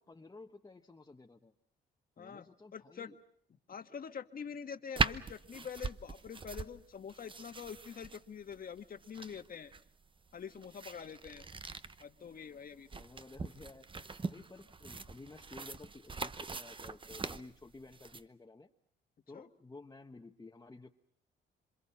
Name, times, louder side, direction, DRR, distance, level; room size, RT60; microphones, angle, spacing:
voice 1, 0.0-1.5 2.2-3.2 6.6-6.7 7.2-7.3 13.0-13.9 14.2-18.7 19.3-21.0, left 3 dB, 20° left, 2 dB, 1.3 m, -53 dB
voice 2, 2.7-3.1 3.7-9.7 10.3-11.5 12.0-13.0 19.3-19.5, left 7 dB, 45° left, 7 dB, 1.6 m, -45 dB
sound 1, 5.0-18.2, right 4 dB, 25° right, 0.9 m, -41 dB
27.0 x 26.0 x 5.8 m, 0.64 s
cardioid pair, 90°, 20 cm